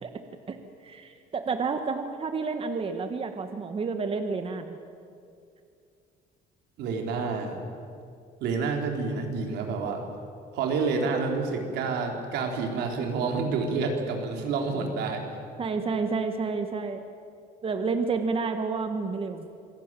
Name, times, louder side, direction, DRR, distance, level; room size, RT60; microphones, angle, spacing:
voice 1, 0.8-4.8 15.6-17.0 17.6-19.5, right 4 dB, 35° right, 7 dB, 1.5 m, -30 dB
voice 2, 6.8-7.6 8.4-10.0 10.5-15.2, right 4 dB, 80° right, 2 dB, 4.0 m, -28 dB
26.5 x 17.5 x 9.1 m, 2.4 s
cardioid pair, 110°, 17 cm